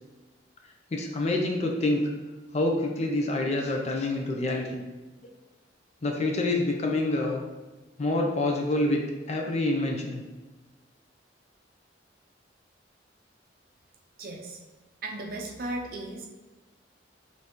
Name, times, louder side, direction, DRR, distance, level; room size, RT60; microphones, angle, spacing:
voice 1, 0.9-2.0 2.5-4.8 6.0-7.4 8.0-9.0 9.3-10.2, left 2 dB, 35° left, 1 dB, 0.5 m, -27 dB
voice 2, 14.2-14.6 15.0-16.3, right 2 dB, 50° right, 1 dB, 0.5 m, -36 dB
5.2 x 2.7 x 2.9 m, 1.2 s
head